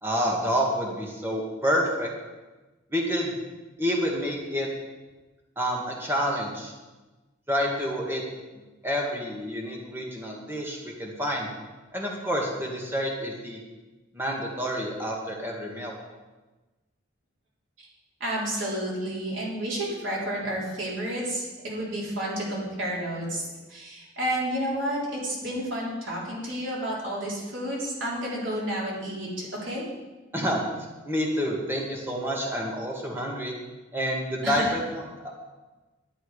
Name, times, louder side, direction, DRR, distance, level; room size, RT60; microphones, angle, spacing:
voice 1, 0.0-2.1 2.9-3.4 3.8-4.7 5.6-6.7 7.5-8.2 8.8-11.5 11.9-13.6 14.1-16.0 30.3-30.6 31.0-33.5 33.9-34.8 35.2-35.3, equal, 10° right, -1 dB, 1.9 m, -28 dB
voice 2, 18.2-29.8 34.4-34.7, right 1 dB, 80° right, -5 dB, 3.8 m, -31 dB
11.0 x 9.1 x 5.0 m, 1.2 s
head